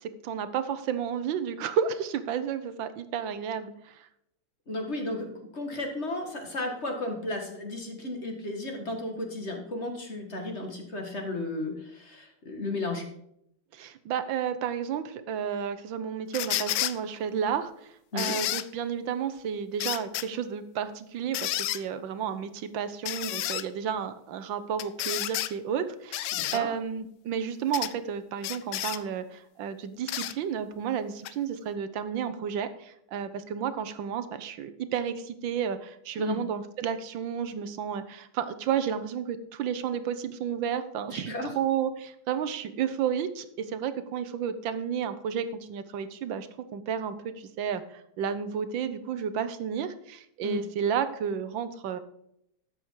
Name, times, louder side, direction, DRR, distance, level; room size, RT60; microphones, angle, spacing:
voice 1, 0.0-4.1 13.7-52.0, right 8 dB, 70° right, 12 dB, 1.5 m, -32 dB
voice 2, 4.7-13.0 18.1-18.4 26.3-26.7 36.2-36.4 41.1-41.5 50.4-50.6, left 2 dB, 35° left, 3 dB, 2.0 m, -34 dB
sound 1, 16.3-17.0 18.2-18.7 19.8-20.3 21.3-21.8 23.1-23.6 24.8-25.5 26.1-26.6 27.7-27.9 28.4-29.0 30.1-30.3 31.2-31.3, left 14 dB, 75° left, 1.2 m, -31 dB
12.5 x 8.0 x 4.7 m, 0.76 s
omnidirectional pair, 2.2 m